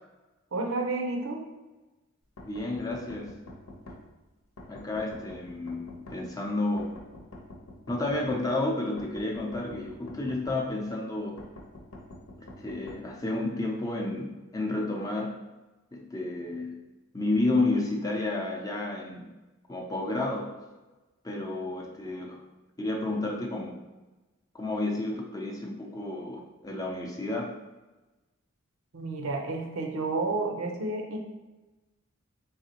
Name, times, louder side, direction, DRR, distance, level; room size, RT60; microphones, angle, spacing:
voice 1, 0.5-1.4 28.9-31.2, right 3 dB, 80° right, 2 dB, 0.7 m, -30 dB
sound 1, 2.4-4.0 4.6-6.2 6.8-8.4 9.0-10.6 11.4-13.0, left 1 dB, 80° left, 0.8 m, -45 dB
voice 2, 2.4-3.3 4.7-6.9 7.9-11.5 12.4-15.4 15.9-16.8 17.1-19.3 19.7-20.5 21.2-22.4 22.8-23.8 24.5-27.5, left 2 dB, 15° left, -1 dB, 0.5 m, -31 dB
4.0 x 3.7 x 2.8 m, 1.1 s
head